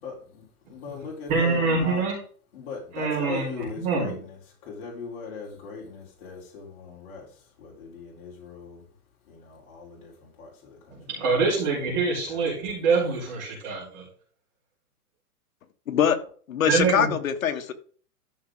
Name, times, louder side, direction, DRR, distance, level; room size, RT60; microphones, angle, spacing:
voice 1, 0.0-2.0 2.5-7.3 7.6-8.8 9.3-11.0 11.8-12.8, left 5 dB, 40° left, 4.0 m, -39 dB
voice 2, 1.3-2.2 2.9-4.1 11.1-14.0 16.7-17.1, right 4 dB, 30° right, 4.4 m, -25 dB
voice 3, 15.9-16.2 16.5-17.7, left 8 dB, 60° left, 1.6 m, -23 dB
13.5 x 6.0 x 3.9 m
hypercardioid pair, 175°, 46 cm